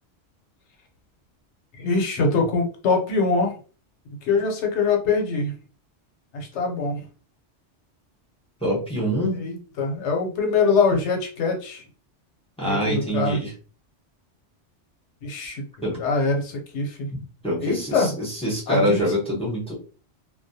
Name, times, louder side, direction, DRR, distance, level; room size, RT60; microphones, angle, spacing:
voice 1, 1.7-3.5 4.2-5.5 6.3-7.0 9.3-11.8 12.7-13.4 15.2-15.7 15.9-17.1 17.6-18.1 18.7-19.0, left 4 dB, 75° left, 2 dB, 0.9 m, -23 dB
voice 2, 8.6-9.4 12.6-13.5 15.8-16.0 17.4-18.1 18.4-19.7, equal, 5° left, -5 dB, 0.7 m, -24 dB
2.2 x 2.1 x 2.7 m, 0.37 s
omnidirectional pair, 1.2 m